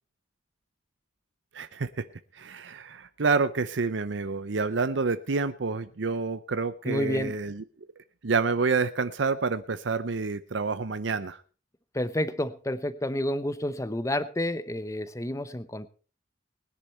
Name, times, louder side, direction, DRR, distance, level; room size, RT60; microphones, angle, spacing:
voice 1, 1.5-2.1 2.3-7.6 8.2-11.4, right 4 dB, 85° right, 12 dB, 0.7 m, -28 dB
voice 2, 6.8-7.3 11.9-15.9, left 1 dB, 15° left, 14 dB, 0.8 m, -30 dB
20.5 x 10.5 x 4.3 m, 0.36 s
head